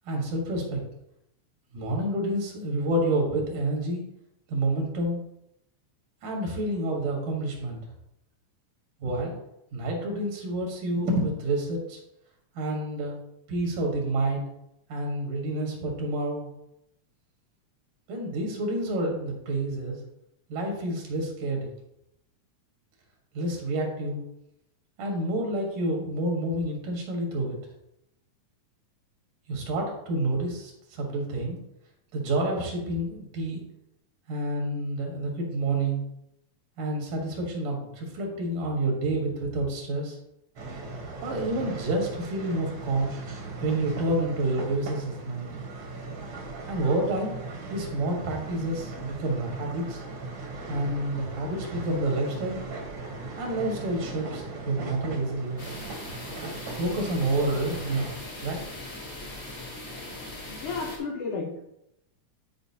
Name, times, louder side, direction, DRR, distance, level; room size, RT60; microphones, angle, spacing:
voice 1, 0.1-0.8 1.7-4.0 4.5-5.2 6.2-7.8 9.0-9.4 9.7-12.0 12.5-13.2 13.5-14.5 14.9-16.5 18.1-20.0 20.5-21.7 23.3-24.2 25.0-27.6 29.5-31.6 32.1-33.6 34.3-36.0 36.8-40.2 41.2-43.1 43.6-45.5 46.7-47.4 47.7-50.0 50.7-52.6 53.4-55.7 56.7-58.1 58.4-58.6, right 1 dB, 85° right, 0 dB, 3.1 m, -29 dB
sound 1, 40.6-58.2, right 3 dB, 55° right, 1.5 m, -39 dB
sound 2, 55.6-61.0, left 2 dB, 35° left, 1.0 m, -40 dB
voice 2, 60.5-61.6, left 4 dB, 70° left, 0 dB, 1.4 m, -33 dB
11.0 x 4.9 x 2.8 m, 0.82 s
omnidirectional pair, 3.5 m